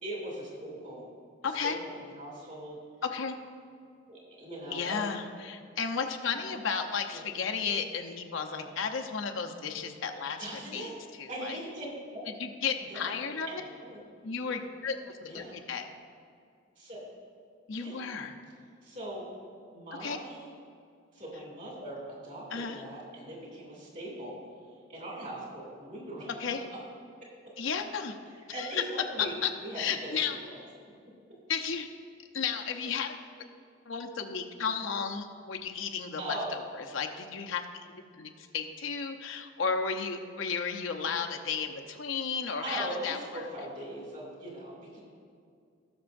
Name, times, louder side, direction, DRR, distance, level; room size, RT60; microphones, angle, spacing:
voice 1, 0.0-1.1 1.6-2.8 4.1-5.1 6.3-6.5 7.1-7.3 8.5-8.7 10.4-10.9 11.3-11.9 12.1-12.2 12.9-13.1 13.5-14.0 14.4-14.6 15.3-15.6 16.8-17.0 17.7-18.0 18.8-19.3 19.7-20.5 21.1-24.4 24.9-26.4 27.2-27.3 28.5-30.4 36.2-36.5 42.6-45.0, right 1 dB, 40° right, -3 dB, 2.5 m, -40 dB
voice 2, 1.4-1.8 3.0-3.4 4.7-10.9 11.2-11.6 12.3-13.6 14.2-15.0 15.2-15.9 17.7-18.3 20.0-20.2 22.5-22.8 26.4-26.6 27.6-28.2 28.6-28.8 29.4-29.5 29.8-30.3 31.5-31.9 32.3-33.2 33.9-36.6 36.9-43.5, left 6 dB, 75° left, 3 dB, 0.7 m, -33 dB
18.5 x 6.2 x 2.6 m, 2.3 s
head